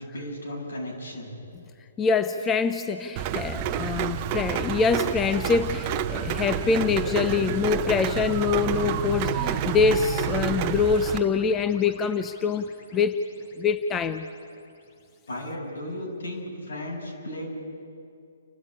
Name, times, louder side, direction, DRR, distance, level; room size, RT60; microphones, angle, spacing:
voice 1, 0.0-1.4 15.3-17.5, left 1 dB, 80° left, -1 dB, 7.8 m, -35 dB
voice 2, 2.0-13.2 13.5-14.3, left 5 dB, 15° left, 10 dB, 0.7 m, -25 dB
Rain, 3.2-11.2, right 10 dB, 30° right, 0.9 m, -29 dB
sound 1, 6.6-14.9, left 3 dB, 35° left, 2.6 m, -43 dB
29.5 x 13.0 x 8.9 m, 2.5 s
hypercardioid pair, 145°, 0 cm